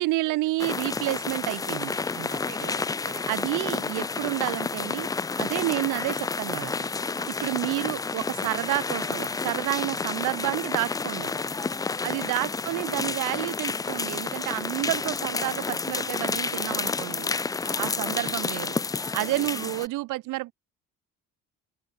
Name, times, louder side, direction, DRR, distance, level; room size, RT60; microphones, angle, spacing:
voice 1, 0.0-2.3 2.6-2.7 3.3-5.1 5.4-6.7 7.4-11.4 12.0-17.3 17.8-18.8 19.1-20.5, right 19 dB, 80° right, 0.8 m, -30 dB
sound 1, 0.6-19.9, left 4 dB, 10° left, 0.3 m, -30 dB
voice 2, 2.1-3.2 7.1-7.6 12.0-12.4 17.2-18.0, right 7 dB, 35° right, 1.3 m, -48 dB
open air
cardioid pair, 130°, 31 cm